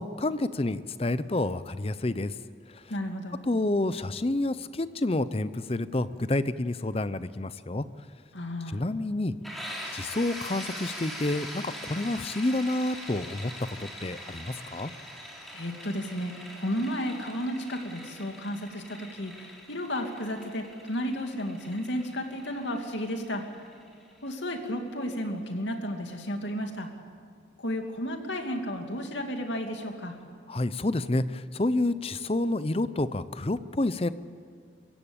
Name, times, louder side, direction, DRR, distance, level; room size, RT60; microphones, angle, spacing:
voice 1, 0.0-2.3 2.7-2.8 3.4-7.8 8.7-9.3 9.9-13.5 13.8-14.9 30.5-34.1, left 2 dB, 30° left, 14 dB, 0.6 m, -29 dB
voice 2, 2.9-3.4 8.3-8.8 15.5-23.4 24.2-26.9 27.6-30.2, equal, 75° left, 4 dB, 2.5 m, -33 dB
sound 1, 9.4-25.0, equal, ahead, 4.0 m, -43 dB
24.5 x 15.0 x 8.7 m, 2.3 s
head